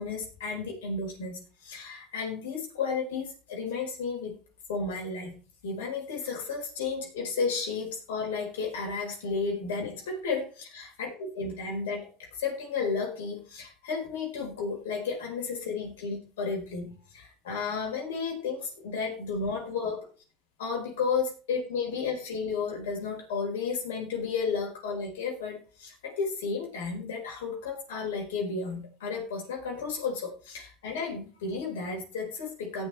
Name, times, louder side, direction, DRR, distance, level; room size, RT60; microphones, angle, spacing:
voice 1, 0.0-4.3 4.7-12.1 12.4-20.0 20.6-32.9, left 5 dB, 85° left, -1 dB, 4.4 m, -33 dB
18.0 x 6.0 x 3.3 m, 0.37 s
hypercardioid pair, 85°, 0 cm